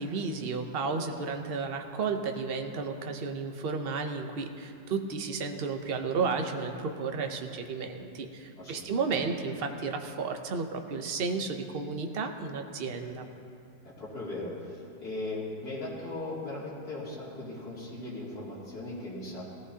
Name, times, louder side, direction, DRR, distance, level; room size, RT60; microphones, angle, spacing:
voice 1, 0.0-13.2, right 4 dB, 50° right, 5 dB, 0.7 m, -33 dB
voice 2, 8.6-9.2 13.8-19.4, left 2 dB, 60° left, -8 dB, 3.4 m, -38 dB
17.5 x 13.5 x 2.8 m, 2.6 s
omnidirectional pair, 1.8 m